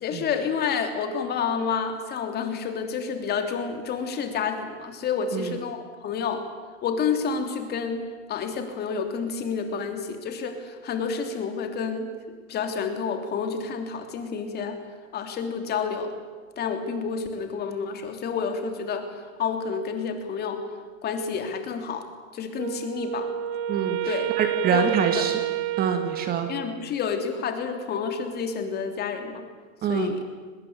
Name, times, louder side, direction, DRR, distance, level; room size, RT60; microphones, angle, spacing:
voice 1, 0.0-6.4 6.8-12.1 12.5-14.8 15.1-16.1 16.6-19.1 19.4-20.6 21.0-22.1 22.3-23.3 24.1-24.3 24.7-24.9 26.5-29.4 29.9-30.2, left 6 dB, 25° left, 6 dB, 3.1 m, -29 dB
Wind instrument woodwind instrument, 22.6-26.9, right 12 dB, 50° right, 1.5 m, -29 dB
voice 2, 24.4-25.4 25.8-26.5 29.8-30.1, right 7 dB, 20° right, 7 dB, 1.9 m, -25 dB
23.5 x 21.0 x 8.7 m, 1.4 s
hypercardioid pair, 130°, 41 cm